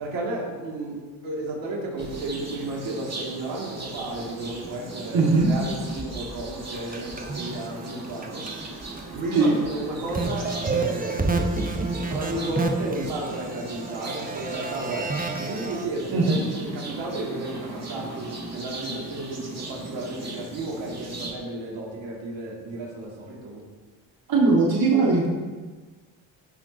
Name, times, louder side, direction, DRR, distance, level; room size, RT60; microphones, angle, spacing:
voice 1, 0.0-8.7 9.1-11.4 12.1-23.6, right 2 dB, 70° right, -3 dB, 2.7 m, -33 dB
sound 1, 2.0-21.3, right 2 dB, 35° right, 2.2 m, -38 dB
voice 2, 5.1-5.5 9.3-9.5 16.1-16.4 24.3-25.3, right 3 dB, 50° right, -3 dB, 2.1 m, -19 dB
sound 2, 6.7-8.7 9.0-9.4 9.7-15.8, right 3 dB, 20° right, 1.1 m, -30 dB
16.0 x 6.0 x 2.9 m, 1.4 s
hypercardioid pair, 55°, 47 cm